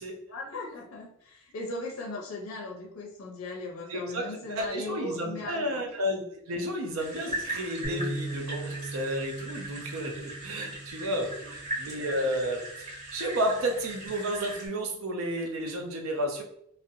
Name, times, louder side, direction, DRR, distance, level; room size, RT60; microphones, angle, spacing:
voice 1, 0.3-5.9 11.3-11.5, left 2 dB, 75° left, 0 dB, 0.5 m, -38 dB
voice 2, 3.9-16.4, equal, 75° right, 3 dB, 0.5 m, -32 dB
sound 1, 7.0-14.7, right 1 dB, 35° right, 1.1 m, -39 dB
Bass guitar, 7.8-14.1, right 2 dB, 20° right, 0.6 m, -40 dB
2.5 x 2.0 x 2.6 m, 0.72 s
head